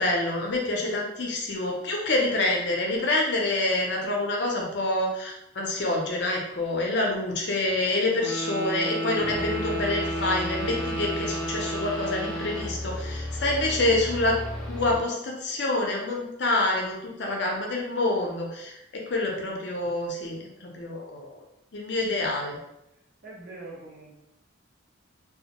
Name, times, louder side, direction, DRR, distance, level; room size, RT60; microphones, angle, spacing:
voice 1, 0.0-14.4 14.7-21.4 21.7-22.6, left 2 dB, 60° left, -1 dB, 0.5 m, -27 dB
Wind instrument woodwind instrument, 8.1-12.7, right 1 dB, 85° right, 0.7 m, -32 dB
sound 1, 9.2-15.0, left 1 dB, 5° left, 0.3 m, -35 dB
voice 2, 23.2-24.1, right 2 dB, 45° right, -5 dB, 0.7 m, -42 dB
2.1 x 2.0 x 2.8 m, 0.84 s
head